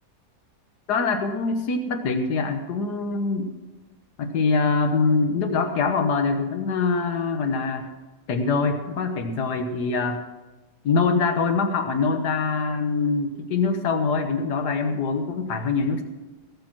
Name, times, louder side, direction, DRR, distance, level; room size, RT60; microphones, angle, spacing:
voice 1, 0.9-3.5 4.2-7.9 8.3-10.2 10.8-16.0, left 4 dB, 80° left, 6 dB, 1.7 m, -24 dB
17.5 x 7.7 x 6.0 m, 1.2 s
omnidirectional pair, 1.7 m